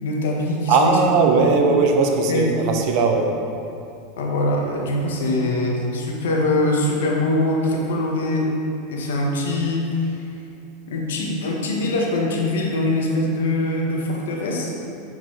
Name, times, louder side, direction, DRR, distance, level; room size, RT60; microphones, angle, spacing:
voice 1, 0.0-1.0 1.4-1.5 2.3-2.5 4.2-8.5 8.9-10.2 10.9-14.7, left 2 dB, 85° left, -1 dB, 1.2 m, -23 dB
voice 2, 0.7-3.3, right 4 dB, 55° right, 3 dB, 0.8 m, -18 dB
7.5 x 4.6 x 3.9 m, 2.6 s
supercardioid pair, 115°, 0 cm